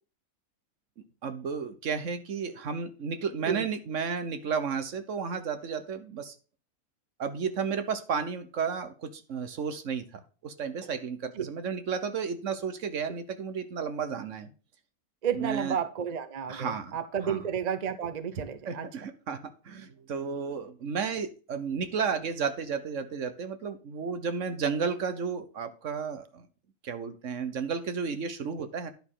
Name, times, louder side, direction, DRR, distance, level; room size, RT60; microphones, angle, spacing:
voice 1, 1.2-6.3 7.2-14.5 15.3-15.8 16.5-17.0 17.2-17.4 18.7-19.4 19.6-26.5 26.8-28.9, right 6 dB, 60° right, 9 dB, 1.2 m, -33 dB
voice 2, 15.2-18.9, right 8 dB, 45° right, 12 dB, 0.6 m, -31 dB
10.0 x 6.4 x 3.8 m, 0.35 s
omnidirectional pair, 1.6 m